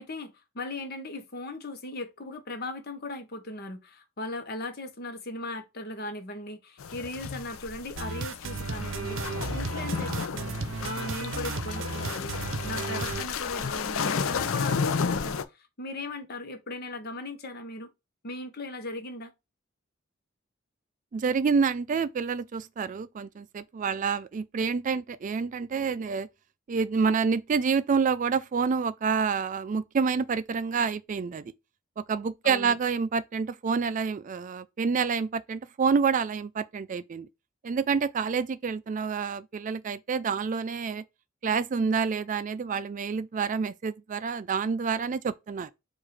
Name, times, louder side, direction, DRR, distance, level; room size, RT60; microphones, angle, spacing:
voice 1, 0.0-12.4 12.6-17.9 18.2-19.3 32.4-32.8, left 2 dB, 50° left, 1.1 m, -38 dB
sound 1, 6.8-15.4, left 5 dB, 85° left, 0.5 m, -32 dB
sound 2, 8.0-13.2, right 4 dB, 65° right, 0.7 m, -34 dB
voice 2, 21.1-26.3 26.7-31.5 32.0-37.3 37.6-41.0 41.4-45.7, right 5 dB, 40° right, 0.3 m, -28 dB
4.8 x 2.6 x 4.1 m
head